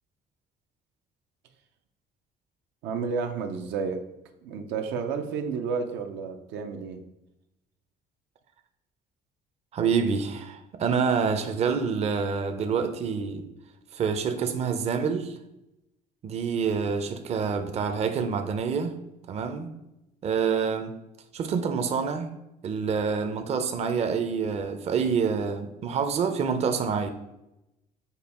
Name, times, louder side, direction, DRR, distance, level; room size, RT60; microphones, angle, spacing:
voice 1, 2.8-4.0 4.4-7.0, right 5 dB, 85° right, 5 dB, 0.6 m, -31 dB
voice 2, 9.7-13.5 13.9-15.4 16.2-19.0 19.3-19.7 20.2-20.9 21.3-22.3 22.6-27.1, right 6 dB, 40° right, 7 dB, 0.5 m, -27 dB
5.2 x 2.3 x 4.1 m, 0.89 s
cardioid pair, 110°, 17 cm